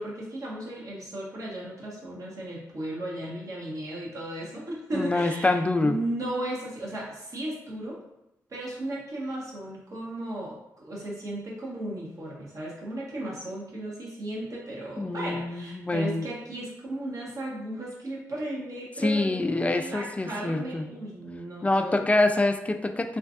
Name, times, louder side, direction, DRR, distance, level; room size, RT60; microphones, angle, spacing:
voice 1, 0.0-8.0 8.5-22.0, right 1 dB, 55° right, -5 dB, 1.2 m, -35 dB
voice 2, 4.9-6.0 15.0-16.3 19.0-20.9 21.6-23.2, left 2 dB, 20° left, 7 dB, 0.3 m, -25 dB
3.1 x 2.5 x 2.4 m, 0.89 s
supercardioid pair, 45°, 7 cm